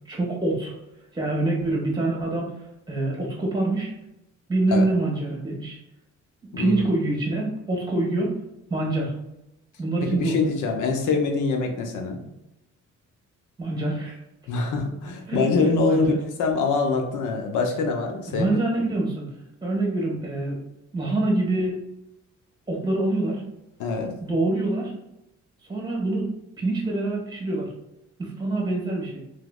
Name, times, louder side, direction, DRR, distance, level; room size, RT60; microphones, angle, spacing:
voice 1, 0.0-0.7 1.1-2.5 2.9-3.9 4.5-5.8 6.4-8.4 8.7-9.1 9.8-10.4 13.6-14.2 15.3-15.4 15.9-16.2 18.3-19.3 19.6-20.6 20.9-21.8 22.7-23.5 24.2-24.9 25.7-27.7 28.2-29.2, right 2 dB, 15° right, -3 dB, 1.4 m, -25 dB
voice 2, 6.5-6.9 10.1-12.2 14.5-18.6 23.8-24.1, left 4 dB, 80° left, 3 dB, 0.7 m, -24 dB
3.3 x 2.9 x 2.3 m, 0.90 s
cardioid pair, 90°, 30 cm